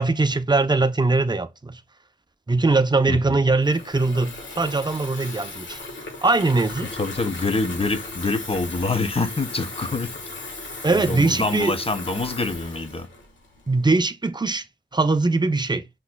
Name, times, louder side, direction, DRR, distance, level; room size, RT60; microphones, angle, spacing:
voice 1, 0.0-1.8 2.5-5.8 6.2-6.9 10.8-11.7 13.7-14.6 14.9-15.8, right 3 dB, 20° right, 0.6 m, -21 dB
voice 2, 3.1-3.4 6.9-10.2 10.5-10.6 10.9-13.1, left 3 dB, 30° left, 0.8 m, -26 dB
Water tap faucet / Fill (with liquid), 3.6-13.9, left 2 dB, 75° left, 1.6 m, -37 dB
5.8 x 3.0 x 2.2 m
cardioid pair, 50°, 20 cm